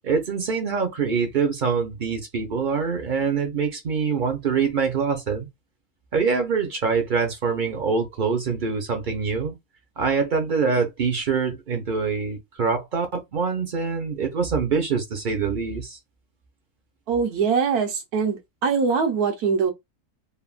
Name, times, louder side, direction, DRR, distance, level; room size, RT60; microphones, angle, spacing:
voice 1, 0.0-5.5 6.1-9.5 10.0-13.1 13.3-16.0, right 5 dB, 50° right, 0.6 m, -24 dB
voice 2, 17.1-19.7, right 5 dB, 85° right, 1.3 m, -23 dB
3.3 x 2.1 x 2.4 m
omnidirectional pair, 1.6 m